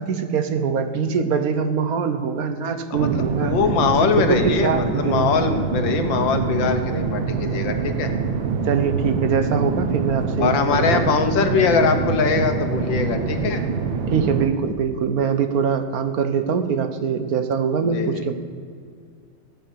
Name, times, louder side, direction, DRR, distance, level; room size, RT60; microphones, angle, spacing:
voice 1, 0.0-3.5 4.0-5.3 8.6-11.1 14.1-18.3, right 6 dB, 55° right, 9 dB, 1.2 m, -23 dB
voice 2, 2.9-8.1 10.4-13.6 17.8-18.2, left 5 dB, 75° left, 7 dB, 1.8 m, -22 dB
sound 1, 2.9-14.5, right 5 dB, 80° right, 1.7 m, -25 dB
17.0 x 5.8 x 9.0 m, 2.2 s
omnidirectional pair, 2.1 m